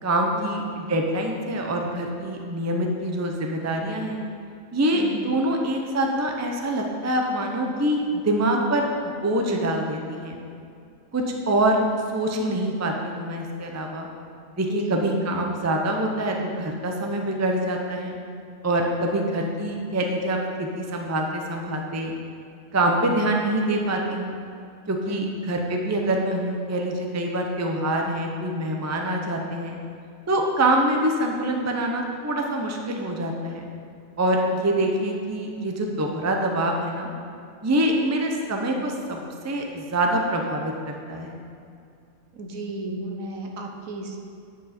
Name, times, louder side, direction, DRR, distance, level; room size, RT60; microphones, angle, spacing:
voice 1, 0.0-4.2 4.7-10.4 11.1-11.8 12.1-14.1 14.6-18.2 18.6-22.1 22.7-24.4 24.9-29.8 30.3-33.7 34.2-37.1 37.6-41.4, right 1 dB, 15° right, 2 dB, 0.6 m, -25 dB
voice 2, 14.7-15.1 25.1-25.4 42.4-44.2, right 2 dB, 70° right, 2 dB, 1.4 m, -34 dB
9.2 x 8.2 x 4.3 m, 2.4 s
omnidirectional pair, 1.5 m